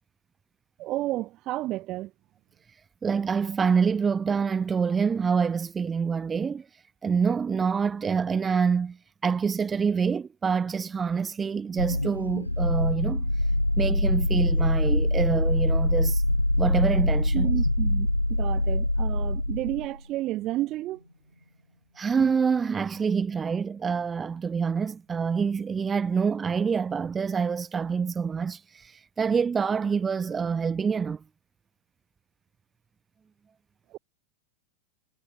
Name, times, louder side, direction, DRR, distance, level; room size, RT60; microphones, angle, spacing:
voice 1, 0.8-2.1 17.3-21.0 33.9-34.0, right 16 dB, 35° right, 2.0 m, -31 dB
voice 2, 3.0-9.0 9.2-13.3 13.8-16.2 16.6-17.5 21.9-31.2, right 6 dB, 15° right, 1.5 m, -26 dB
sound 1, 11.8-20.0, left 1 dB, 85° left, 2.6 m, -24 dB
figure-of-eight pair, 90°, 0 cm